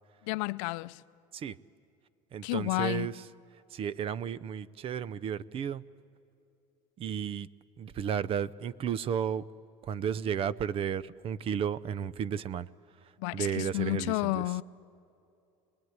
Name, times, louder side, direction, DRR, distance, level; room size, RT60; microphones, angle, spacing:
voice 1, 0.3-1.0 2.4-3.1 13.2-14.6, left 22 dB, 80° left, 0.6 m, -31 dB
voice 2, 2.3-3.1 3.7-5.8 7.0-7.5 7.8-9.4 9.9-12.7 13.3-14.5, right 8 dB, 35° right, 0.5 m, -33 dB
27.0 x 20.5 x 9.5 m
cardioid pair, 140°, 17 cm